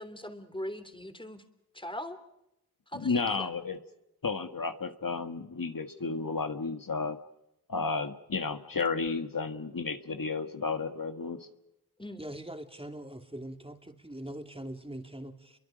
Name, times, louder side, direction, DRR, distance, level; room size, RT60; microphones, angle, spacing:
voice 1, 0.0-1.4 1.7-2.2 2.9-3.5 12.0-12.2, left 1 dB, 15° left, 9 dB, 3.2 m, -40 dB
voice 2, 2.9-3.8 4.2-7.2 7.7-11.5, left 4 dB, 65° left, 7 dB, 1.7 m, -32 dB
voice 3, 12.2-15.6, right 1 dB, 15° right, 5 dB, 2.7 m, -42 dB
30.0 x 23.5 x 5.2 m, 0.85 s
wide cardioid pair, 60°, 37 cm